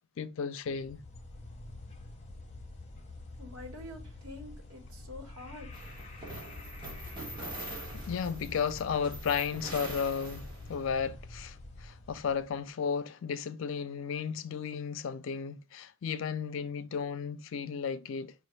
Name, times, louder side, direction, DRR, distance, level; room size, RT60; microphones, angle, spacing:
voice 1, 0.2-1.0 8.1-18.3, left 6 dB, 60° left, 0.4 m, -34 dB
sound 1, 0.7-12.6, left 2 dB, 30° left, 0.7 m, -47 dB
voice 2, 3.4-5.7, left 1 dB, 80° right, 1.5 m, -46 dB
sound 2, 5.7-10.9, right 2 dB, 20° right, 1.0 m, -44 dB
5.0 x 2.5 x 3.1 m
head